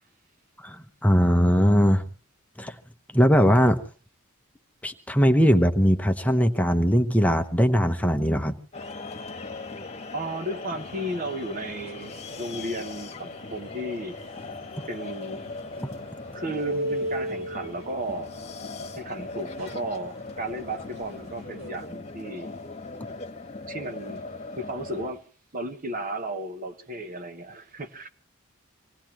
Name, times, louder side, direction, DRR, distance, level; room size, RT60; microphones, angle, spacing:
voice 1, 0.6-2.1 2.6-2.7 3.1-3.8 4.8-8.5, equal, 5° left, 0.8 m, -20 dB
sound 1, 8.7-25.1, left 3 dB, 30° left, 1.4 m, -39 dB
voice 2, 10.1-14.2 14.9-15.4 15.8-15.9 16.3-18.3 19.0-22.5 23.7-24.2 24.6-25.2 25.5-28.1, right 1 dB, 40° right, 1.3 m, -34 dB
sound 2, 10.7-21.7, right 1 dB, 75° right, 4.4 m, -39 dB
26.0 x 18.5 x 3.0 m
head